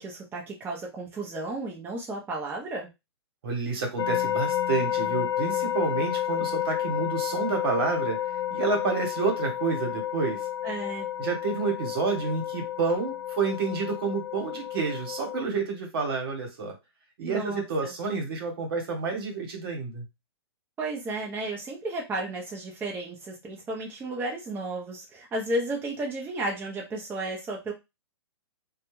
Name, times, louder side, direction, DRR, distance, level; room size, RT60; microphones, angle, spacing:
voice 1, 0.0-2.9 10.6-11.1 17.3-17.9 20.8-27.7, right 2 dB, 15° right, -2 dB, 0.7 m, -33 dB
voice 2, 3.4-8.2 8.5-10.5 11.2-16.8 17.2-20.1, right 4 dB, 60° right, 3 dB, 1.2 m, -29 dB
sound 1, 4.0-15.4, left 11 dB, 70° left, 0.4 m, -30 dB
2.2 x 2.2 x 3.1 m, 0.23 s
hypercardioid pair, 130°, 14 cm